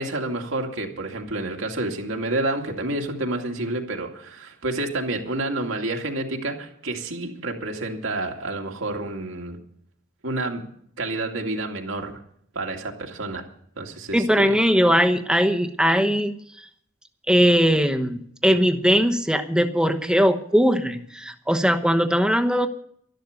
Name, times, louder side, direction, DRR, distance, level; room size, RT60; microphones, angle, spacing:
voice 1, 0.0-9.6 10.2-10.6 11.0-12.1 12.5-13.4 13.8-14.6, right 2 dB, 75° right, 2 dB, 2.3 m, -29 dB
voice 2, 14.1-16.3 17.3-22.7, equal, 5° right, 6 dB, 1.0 m, -20 dB
12.5 x 12.0 x 6.5 m, 0.65 s
head